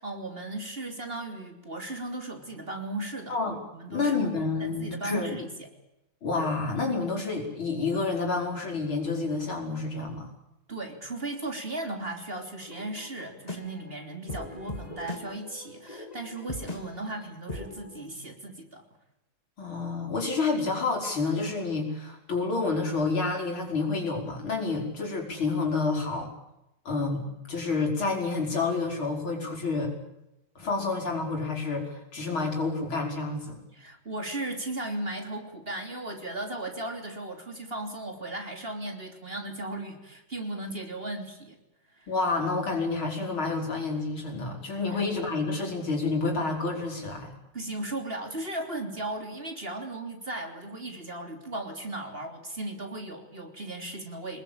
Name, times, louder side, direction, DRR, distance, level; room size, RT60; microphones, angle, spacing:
voice 1, 0.0-3.4 3.7-4.1 4.6-5.7 10.7-18.8 33.7-41.6 41.9-42.1 44.9-45.0 47.5-54.4, right 2 dB, 30° right, 4 dB, 3.6 m, -36 dB
voice 2, 3.9-5.4 6.2-10.3 19.6-26.3 26.9-29.9 30.6-33.6 42.1-47.3, left 3 dB, 85° left, 1 dB, 6.2 m, -29 dB
Beach drive, 12.6-18.0, left 2 dB, 20° left, 2.3 m, -41 dB
26.0 x 20.5 x 8.8 m, 0.89 s
omnidirectional pair, 2.2 m